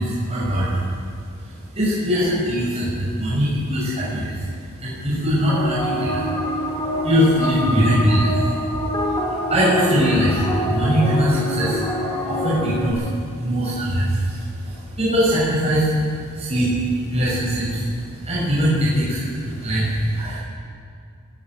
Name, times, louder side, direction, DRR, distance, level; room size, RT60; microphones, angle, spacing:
voice 1, 0.0-20.4, equal, 30° right, -7 dB, 6.8 m, -22 dB
sound 1, 5.5-12.9, equal, 15° left, 4.0 m, -25 dB
20.0 x 19.0 x 9.5 m, 2.3 s
head